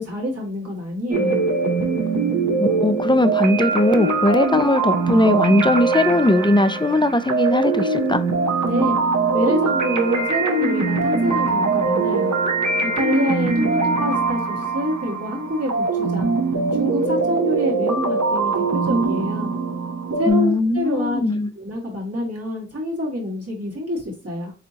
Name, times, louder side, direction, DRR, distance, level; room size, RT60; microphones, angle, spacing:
voice 1, 0.0-1.4 8.6-9.0 9.3-12.3 12.8-16.3 16.7-19.5 20.2-21.2 21.6-24.5, equal, 55° right, 2.1 m, -26 dB
sound 1, 1.1-20.3, right 4 dB, 70° right, 0.8 m, -22 dB
voice 2, 2.6-8.2 20.3-21.5, left 1 dB, 15° left, 0.4 m, -19 dB
4.0 x 3.4 x 2.8 m
wide cardioid pair, 45°, 30 cm